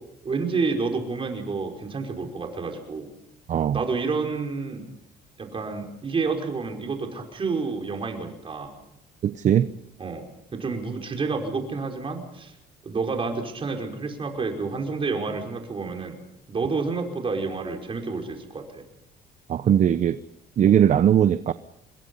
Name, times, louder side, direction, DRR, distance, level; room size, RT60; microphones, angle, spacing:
voice 1, 0.2-3.1 3.7-4.8 5.4-8.7 10.0-10.3 10.5-12.5 12.8-16.2 16.5-18.8, right 4 dB, 30° right, 5.2 m, -29 dB
voice 2, 3.5-3.8 9.2-9.7 19.5-20.2 20.6-21.5, right 9 dB, 45° right, 0.8 m, -19 dB
26.0 x 22.0 x 5.5 m
cardioid pair, 110°, 17 cm